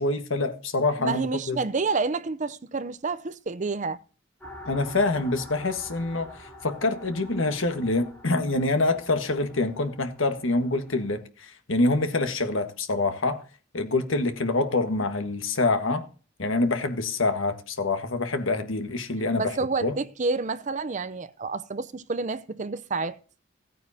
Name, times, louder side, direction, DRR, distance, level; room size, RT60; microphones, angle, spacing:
voice 1, 0.0-1.6 4.7-13.4 13.7-16.0 16.4-19.5 19.8-20.0, left 2 dB, 85° left, 1.5 m, -26 dB
voice 2, 1.0-4.0 19.4-23.2, right 4 dB, 40° right, 0.6 m, -29 dB
sound 1, 4.4-11.2, left 1 dB, 10° left, 3.0 m, -46 dB
16.0 x 9.2 x 2.8 m
head